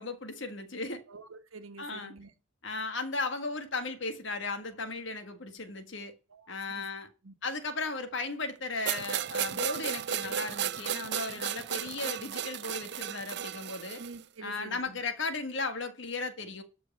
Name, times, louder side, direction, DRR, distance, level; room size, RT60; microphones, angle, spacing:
voice 1, 0.0-1.0 1.8-2.1 2.6-6.1 6.5-7.1 7.4-14.0 14.4-16.6, left 3 dB, 65° left, 1.7 m, -36 dB
voice 2, 1.1-2.3 6.3-6.8 7.2-7.3 14.0-15.0, right 3 dB, 90° right, 1.4 m, -47 dB
sound 1, 8.8-14.2, right 9 dB, 55° right, 0.5 m, -34 dB
13.0 x 4.8 x 7.3 m
head